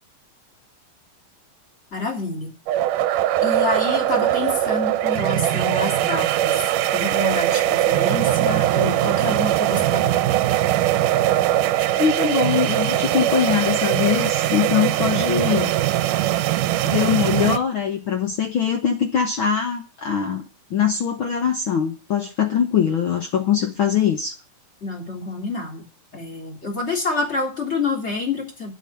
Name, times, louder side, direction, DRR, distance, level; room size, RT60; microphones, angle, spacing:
voice 1, 1.9-2.5 3.4-6.6 6.9-10.2 24.8-25.8 26.1-28.7, left 3 dB, 20° left, 1 dB, 3.1 m, -27 dB
sound 1, 2.7-17.6, right 13 dB, 80° right, 2.2 m, -21 dB
voice 2, 11.9-15.7 16.8-20.4 20.7-24.3, left 8 dB, 75° left, 5 dB, 1.1 m, -22 dB
9.0 x 8.2 x 8.7 m, 0.34 s
omnidirectional pair, 3.8 m